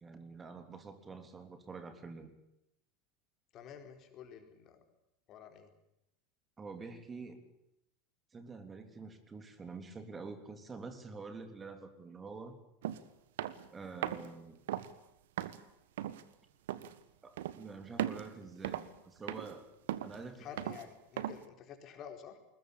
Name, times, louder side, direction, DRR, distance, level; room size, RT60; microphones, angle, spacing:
voice 1, 0.0-2.3 6.6-7.5 8.3-12.6 13.7-14.6 17.2-19.7 20.0-20.5, right 4 dB, 25° right, 8 dB, 3.4 m, -47 dB
voice 2, 3.5-4.9 5.3-5.7 20.4-22.4, left 8 dB, 45° left, 6 dB, 4.5 m, -50 dB
sound 1, 12.8-13.0 13.4-13.7 14.0-14.3 14.7-14.9 15.4-15.6 16.0-16.2 16.7-16.9 17.4-17.6 18.0-18.3 18.6-19.0 19.3-19.6 19.9-20.2 20.6-20.8 21.2-21.4, right 12 dB, 70° right, 1.4 m, -37 dB
21.5 x 20.5 x 8.6 m, 0.85 s
hypercardioid pair, 85°, 0 cm